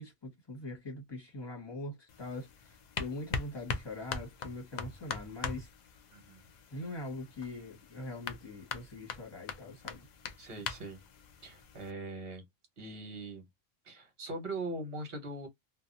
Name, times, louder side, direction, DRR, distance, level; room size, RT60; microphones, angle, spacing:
voice 1, 0.0-5.7 6.7-10.1, left 2 dB, 20° left, 1.2 m, -42 dB
sound 1, 2.1-11.9, left 5 dB, 65° left, 0.4 m, -42 dB
voice 2, 6.1-6.5 10.4-11.0 11.4-12.4 12.8-13.4 13.8-15.5, right 2 dB, 55° right, 1.3 m, -41 dB
2.6 x 2.3 x 2.5 m
omnidirectional pair, 1.3 m